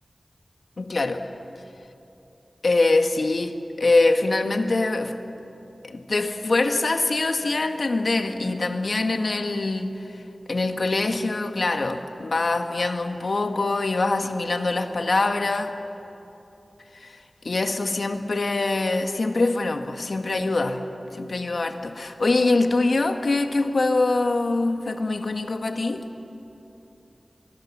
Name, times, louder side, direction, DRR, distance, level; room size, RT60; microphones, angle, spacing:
voice 1, 0.8-1.2 2.6-3.5 3.8-5.1 5.8-9.9 10.5-15.7 17.0-17.1 17.4-20.8 21.1-26.0, left 2 dB, 65° left, 6 dB, 1.5 m, -23 dB
23.5 x 23.5 x 7.3 m, 2.9 s
wide cardioid pair, 75°, 0 cm